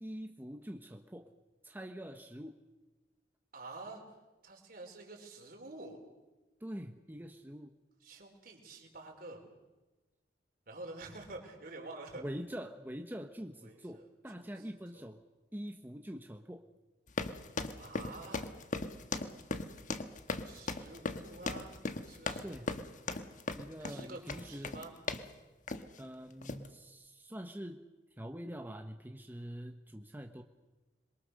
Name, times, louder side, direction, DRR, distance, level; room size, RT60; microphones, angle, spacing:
voice 1, 0.0-1.3 1.6-2.6 6.6-7.7 12.2-15.2 15.5-16.6 22.4-22.7 23.5-24.8 26.0-27.9 28.2-30.4, equal, 10° right, 4 dB, 1.1 m, -44 dB
voice 2, 3.5-4.0 4.4-6.0 8.0-9.4 10.7-12.2 13.6-14.1 14.3-14.5 14.9-15.0 17.8-18.5 20.4-22.8 23.8-24.9, right 2 dB, 60° right, 1 dB, 4.9 m, -48 dB
sound 1, 17.1-25.3 25.7-26.0 26.4-26.7, left 3 dB, 50° left, 1.4 m, -38 dB
26.5 x 23.0 x 6.6 m, 1.2 s
head